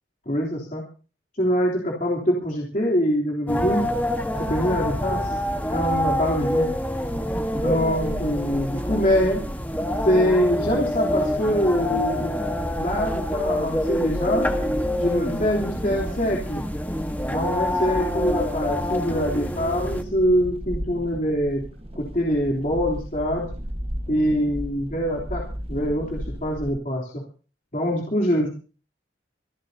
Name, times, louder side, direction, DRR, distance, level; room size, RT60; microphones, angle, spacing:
voice 1, 0.2-0.8 1.4-3.9 4.3-5.3 5.7-6.7 7.5-9.4 10.0-12.3 12.8-14.5 15.0-16.6 17.2-21.6 21.9-23.5 24.1-25.4 25.7-27.2 27.7-28.5, equal, 45° left, -3 dB, 3.3 m, -24 dB
sound 1, 3.5-20.0, equal, 10° left, 1.4 m, -26 dB
sound 2, 7.1-26.7, equal, 30° right, 1.4 m, -37 dB
26.0 x 14.0 x 2.8 m, 0.37 s
head